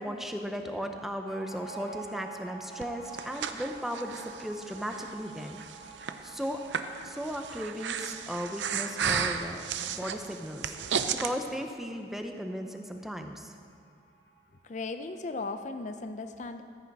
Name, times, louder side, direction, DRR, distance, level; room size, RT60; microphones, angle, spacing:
voice 1, 0.0-5.6 6.2-6.6 7.0-10.8 11.2-13.5, equal, ahead, 5 dB, 0.6 m, -36 dB
sound 1, 1.2-14.4 14.7-14.8 15.0-15.8, right 5 dB, 75° left, 3.1 m, -49 dB
Breathing, 2.8-11.3, right 7 dB, 85° right, 0.5 m, -34 dB
voice 2, 14.6-16.6, left 3 dB, 45° left, 8 dB, 0.5 m, -36 dB
14.0 x 8.3 x 4.7 m, 2.2 s
head